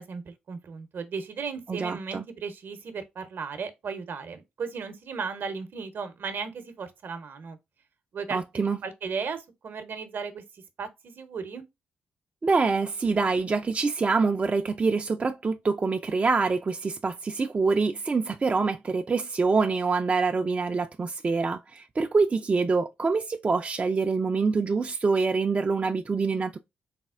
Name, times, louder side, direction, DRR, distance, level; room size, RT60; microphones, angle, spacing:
voice 1, 0.0-7.6 8.1-8.4 8.8-11.6, right 5 dB, 60° right, 0.7 m, -36 dB
voice 2, 1.7-2.2 8.3-8.8 12.4-26.6, right 4 dB, 35° right, 0.3 m, -25 dB
4.1 x 2.0 x 2.4 m
supercardioid pair, 50°, 4 cm